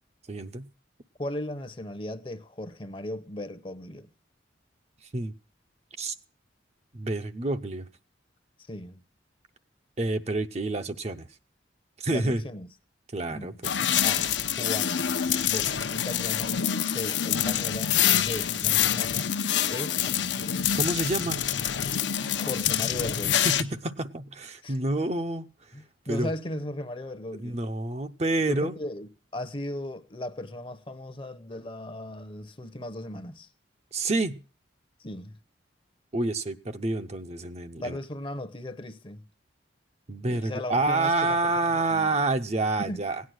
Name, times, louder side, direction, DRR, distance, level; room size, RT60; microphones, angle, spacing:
voice 1, 0.3-0.7 5.1-5.3 6.0-6.1 6.9-7.9 10.0-11.3 12.0-12.4 13.1-13.5 20.7-21.5 23.4-25.4 26.1-26.3 27.4-28.7 33.9-34.4 36.1-38.0 40.1-43.2, right 2 dB, 35° right, 0.6 m, -28 dB
voice 2, 1.2-4.1 8.7-9.0 12.1-12.7 13.3-13.6 14.0-14.3 14.6-15.1 15.4-20.6 22.3-23.5 24.6-24.8 25.7-27.6 28.5-33.5 35.0-35.4 37.8-39.3 40.3-42.1 42.8-43.0, left 1 dB, 25° left, 0.8 m, -37 dB
sound 1, 13.6-23.6, left 9 dB, 70° left, 0.8 m, -26 dB
17.5 x 9.5 x 6.3 m
head